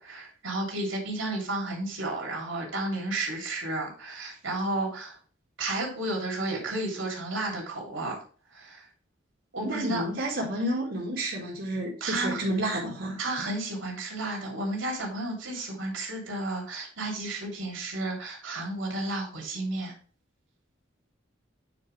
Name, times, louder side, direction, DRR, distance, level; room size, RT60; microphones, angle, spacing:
voice 1, 0.0-5.2 5.6-8.2 8.5-8.9 9.5-10.0 12.0-12.4 13.2-19.9, right 2 dB, 80° right, 0 dB, 3.1 m, -32 dB
voice 2, 9.6-13.2, right 1 dB, 65° right, -3 dB, 2.0 m, -30 dB
9.2 x 4.8 x 3.3 m, 0.40 s
head